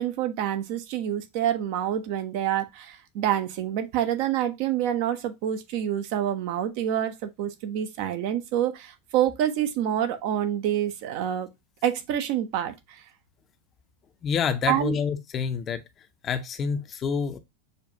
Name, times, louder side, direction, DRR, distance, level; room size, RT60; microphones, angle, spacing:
voice 1, 0.0-11.5 11.8-13.0 14.7-15.0, right 11 dB, 45° right, 0.6 m, -27 dB
voice 2, 14.2-15.8 16.2-17.4, left 6 dB, 25° left, 0.5 m, -27 dB
6.5 x 2.4 x 2.6 m
figure-of-eight pair, 90°, 0 cm